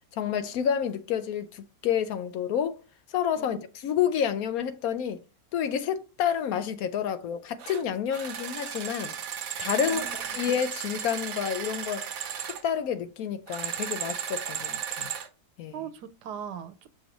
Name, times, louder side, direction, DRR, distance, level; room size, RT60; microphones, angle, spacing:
voice 1, 0.1-2.8 3.1-5.2 5.5-9.1 9.6-12.1 12.6-15.1 15.6-15.8, left 8 dB, 70° left, 1.0 m, -29 dB
sound 1, 7.6-7.8 8.1-12.6 13.5-15.3, right 8 dB, 65° right, 1.2 m, -35 dB
voice 2, 9.8-10.4 15.7-16.9, right 8 dB, 85° right, 1.3 m, -40 dB
6.1 x 3.0 x 5.0 m
omnidirectional pair, 1.7 m